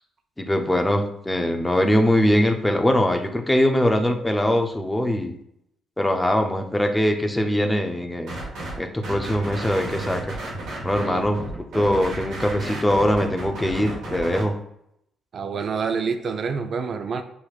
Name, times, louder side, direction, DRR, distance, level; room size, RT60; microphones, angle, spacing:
voice 1, 0.4-5.3 6.0-8.4 8.8-10.4 10.8-11.4 11.7-14.5, left 1 dB, 10° left, 4 dB, 0.6 m, -22 dB
sound 1, 8.3-8.8 9.0-14.4, right 2 dB, 85° right, 1.5 m, -33 dB
voice 2, 11.0-11.5 15.3-17.2, right 5 dB, 55° right, 7 dB, 0.4 m, -27 dB
6.8 x 3.0 x 2.4 m, 0.76 s
cardioid pair, 90°, 0 cm